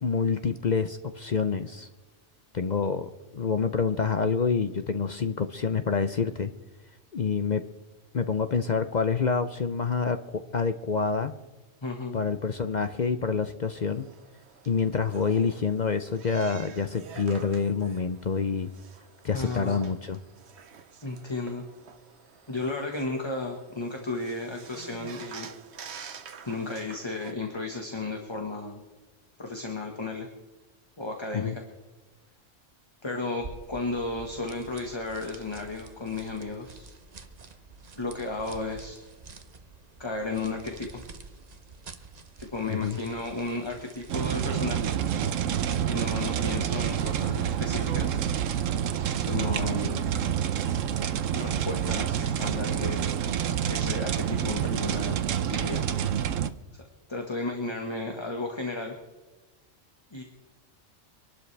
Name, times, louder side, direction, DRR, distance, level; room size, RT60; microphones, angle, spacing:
voice 1, 0.0-1.9 2.5-6.5 7.1-7.6 8.1-11.3 12.1-14.1 14.7-18.7 19.2-20.2 31.3-31.6 42.7-43.0, left 5 dB, 45° left, 9 dB, 0.6 m, -27 dB
voice 2, 11.8-12.2 19.3-19.9 21.0-21.6 22.5-25.5 26.4-28.8 29.4-30.3 31.0-31.6 33.0-36.9 38.0-39.0 40.0-41.0 42.4-44.9 45.8-48.2 49.1-50.0 51.3-53.0 53.7-55.2 55.4-55.8 56.7-56.8 57.1-58.9 60.1-60.2, left 2 dB, 20° left, 1 dB, 1.5 m, -33 dB
sound 1, 13.7-27.3, right 6 dB, 60° right, 1.1 m, -48 dB
sound 2, 33.3-46.2, right 3 dB, 35° right, 0.9 m, -48 dB
sound 3, 44.1-56.5, right 9 dB, 90° right, 1.1 m, -28 dB
25.0 x 12.0 x 3.4 m, 1.2 s
omnidirectional pair, 1.3 m